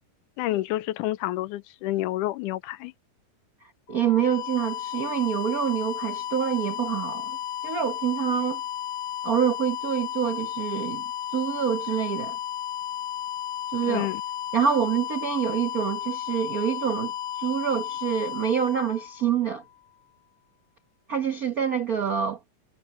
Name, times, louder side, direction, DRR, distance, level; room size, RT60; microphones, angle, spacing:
voice 1, 0.4-2.9 13.8-14.2, left 15 dB, 90° left, 2.2 m, -29 dB
voice 2, 3.6-7.4 7.6-8.6 9.2-11.0 11.3-12.4 13.7-14.1 14.5-17.1 17.4-19.6 21.1-22.4, right 8 dB, 70° right, 0.8 m, -26 dB
sound 1, 3.9-19.7, left 11 dB, 70° left, 2.7 m, -33 dB
omnidirectional pair, 3.5 m